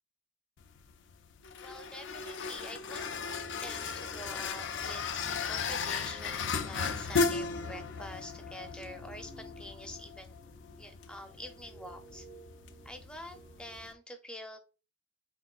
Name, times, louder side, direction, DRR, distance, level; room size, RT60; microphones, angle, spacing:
sound 1, 0.6-13.9, left 5 dB, 80° left, 0.4 m, -36 dB
voice 1, 1.6-3.1 3.4-10.4 10.8-12.3 12.8-14.6, equal, 5° left, 5 dB, 0.5 m, -46 dB
sound 2, 2.9-13.9, right 1 dB, 45° right, 0.6 m, -55 dB
4.1 x 3.7 x 2.4 m, 0.32 s
head